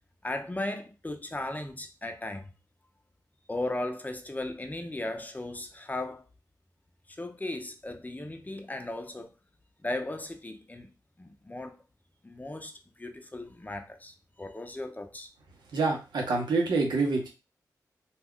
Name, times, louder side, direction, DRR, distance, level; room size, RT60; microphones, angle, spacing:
voice 1, 0.2-2.5 3.5-6.2 7.2-9.3 9.8-10.9 11.2-11.8 12.2-12.7 13.0-15.3, left 1 dB, 20° left, 0.6 m, -36 dB
voice 2, 15.7-17.3, right 3 dB, 85° right, 0.9 m, -26 dB
2.3 x 2.2 x 3.6 m
cardioid pair, 45°, 8 cm